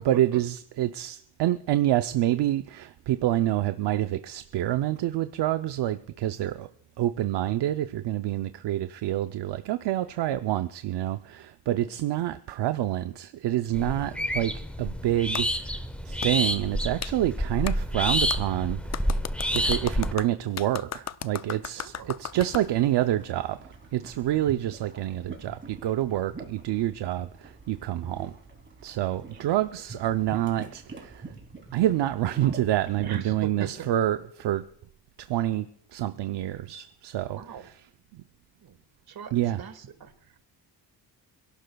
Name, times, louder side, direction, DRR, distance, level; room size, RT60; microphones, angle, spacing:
voice 1, 0.0-6.7 7.0-19.2 19.5-23.6 23.9-28.4 28.8-31.3 31.7-34.6 35.2-37.8 38.1-38.2 39.3-39.6, right 13 dB, 80° right, 10 dB, 0.6 m, -27 dB
sound 1, 13.7-20.1, equal, 5° left, 0.8 m, -29 dB
Clapping, 15.3-15.5 16.2-16.3 17.0-17.1 17.7-17.8 18.3-18.4 18.9-22.7, left 9 dB, 40° left, 0.5 m, -35 dB
voice 2, 21.8-22.1 29.2-29.5 33.0-33.9 37.2-37.7 38.6-40.4, right 8 dB, 60° right, 9 dB, 1.7 m, -41 dB
sound 2, 21.9-33.2, right 3 dB, 30° right, 3.0 m, -45 dB
27.0 x 12.0 x 2.3 m, 0.68 s
cardioid pair, 105°, 41 cm